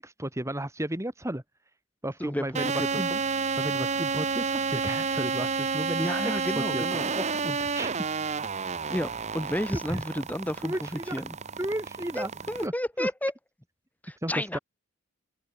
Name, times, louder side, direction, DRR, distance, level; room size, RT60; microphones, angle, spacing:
voice 1, 0.0-1.4 2.0-3.1 3.6-6.5 6.7-7.9 9.9-10.0 10.6-11.2 11.6-12.3 12.6-12.7 13.0-13.1 14.2-14.6, right 1 dB, 15° right, 1.9 m, -33 dB
voice 2, 2.2-3.2 6.0-7.1 8.9-11.4 12.1-13.3 14.0-14.6, left 1 dB, 5° left, 2.4 m, -32 dB
sound 1, 2.5-12.7, right 5 dB, 30° right, 0.8 m, -30 dB
head